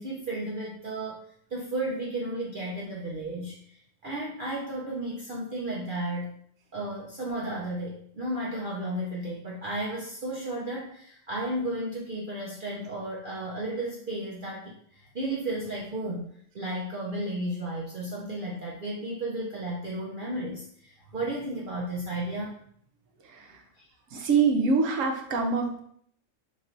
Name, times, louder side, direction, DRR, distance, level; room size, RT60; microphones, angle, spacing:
voice 1, 0.0-6.3 6.7-16.3 16.5-22.5 23.8-23.9, right 1 dB, 50° right, -4 dB, 0.7 m, -33 dB
voice 2, 24.1-25.8, right 5 dB, 75° right, 3 dB, 1.0 m, -24 dB
3.0 x 2.6 x 4.2 m, 0.64 s
omnidirectional pair, 1.4 m